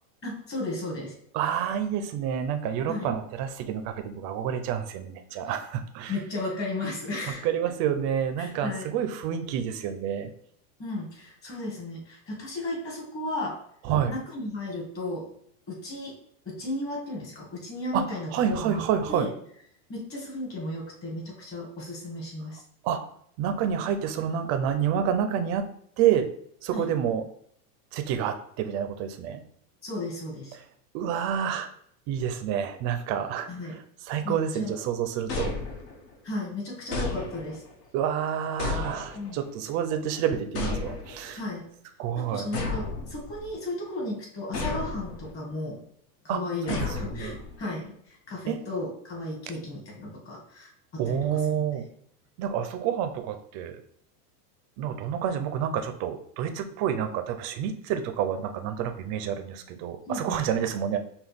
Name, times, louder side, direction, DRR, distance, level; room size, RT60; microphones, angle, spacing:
voice 1, 0.2-1.1 2.9-3.1 5.5-5.6 6.1-7.4 8.4-8.9 10.8-13.6 14.1-15.3 15.7-16.2 16.5-18.8 19.1-19.3 19.9-22.6 26.7-26.9 29.8-30.5 33.5-33.8 34.2-34.8 36.2-37.6 39.1-39.4 41.3-41.7 42.2-45.8 46.2-51.4 60.1-60.4, left 2 dB, 25° left, -2 dB, 1.8 m, -34 dB
voice 2, 1.3-6.1 7.4-10.3 13.8-14.1 17.9-18.0 18.3-19.3 22.8-23.1 23.4-25.7 26.0-26.3 26.6-27.2 27.9-29.4 30.9-31.7 32.1-33.5 34.1-35.5 37.9-41.4 42.0-42.5 46.3-46.4 46.7-47.4 48.5-48.6 51.0-51.9 52.4-53.8 54.8-61.0, right 8 dB, 35° right, 8 dB, 0.4 m, -28 dB
sound 1, 35.3-36.2 36.9-37.7 38.6-39.5 40.5-41.4 42.5-43.6 44.5-45.3 46.7-47.6, left 4 dB, 75° left, 1.4 m, -33 dB
5.7 x 2.3 x 3.4 m, 0.66 s
supercardioid pair, 135°, 47 cm